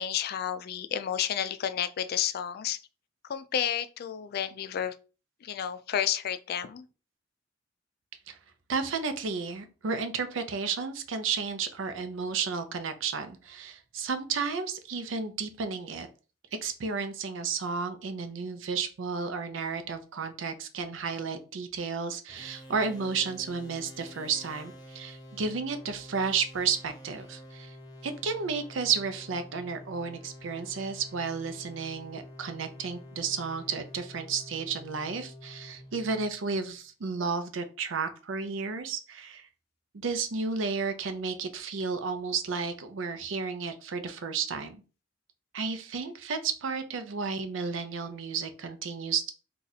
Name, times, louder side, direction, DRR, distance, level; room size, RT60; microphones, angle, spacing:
voice 1, 0.0-2.8 3.3-4.9 5.4-6.8, left 9 dB, 55° left, 0.3 m, -31 dB
voice 2, 8.7-16.1 16.6-27.7 28.0-39.5 39.9-44.8 45.5-49.3, right 5 dB, 80° right, 0.5 m, -32 dB
sound 1, 22.3-36.8, left 1 dB, 20° left, 0.7 m, -48 dB
2.7 x 2.4 x 3.9 m
head